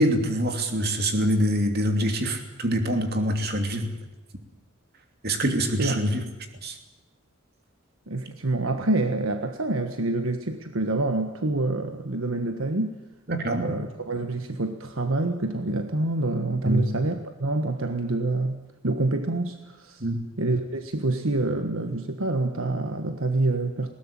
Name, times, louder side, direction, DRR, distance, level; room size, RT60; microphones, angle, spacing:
voice 1, 0.0-3.9 5.2-6.2 6.6-6.8 13.3-13.8 16.6-16.8 20.0-20.2, equal, 50° right, 5 dB, 2.9 m, -25 dB
voice 2, 8.1-13.0 13.6-20.0 20.4-23.9, right 2 dB, 75° right, 7 dB, 1.5 m, -27 dB
20.5 x 18.0 x 9.0 m, 1.1 s
head